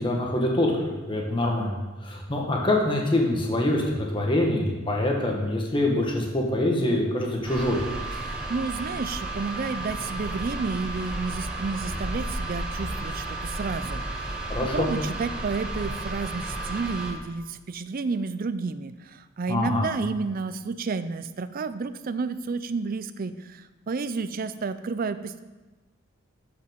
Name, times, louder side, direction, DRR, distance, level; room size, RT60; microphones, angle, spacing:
voice 1, 0.0-7.8 14.5-14.9 19.5-19.9, left 1 dB, 25° left, -1 dB, 1.5 m, -25 dB
sound 1, 7.5-17.1, right 2 dB, 5° right, 1.4 m, -33 dB
voice 2, 8.2-25.4, right 4 dB, 45° right, 12 dB, 0.4 m, -31 dB
12.5 x 5.6 x 5.2 m, 1.2 s
head